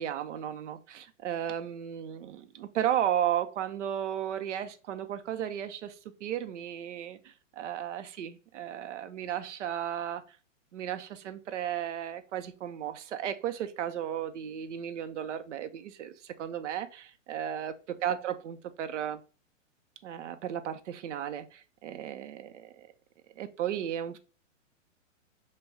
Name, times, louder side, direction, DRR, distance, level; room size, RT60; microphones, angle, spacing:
voice 1, 0.0-10.2 10.7-19.2 20.0-22.9 23.4-24.2, right 10 dB, 65° right, 0.7 m, -34 dB
6.1 x 2.3 x 3.5 m
hypercardioid pair, 140°, 39 cm